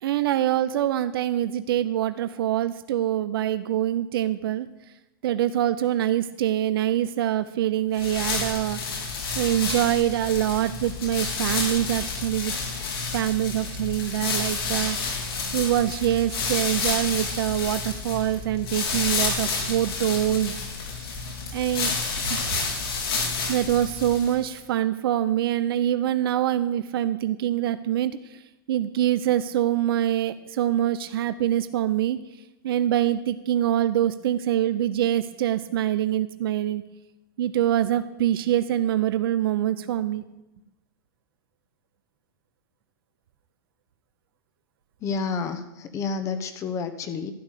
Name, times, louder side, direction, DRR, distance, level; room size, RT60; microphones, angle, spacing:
voice 1, 0.0-4.7 5.2-8.8 9.4-12.6 13.1-15.3 15.5-20.5 21.5-22.6 23.5-28.2 28.7-32.2 32.6-36.8 37.4-40.2, right 12 dB, 75° right, 12 dB, 0.7 m, -25 dB
sound 1, 7.9-24.5, left 4 dB, 85° left, 4.5 m, -30 dB
voice 2, 45.0-47.3, left 5 dB, 25° left, 9 dB, 1.0 m, -30 dB
12.5 x 9.8 x 6.5 m, 0.98 s
supercardioid pair, 150°, 12 cm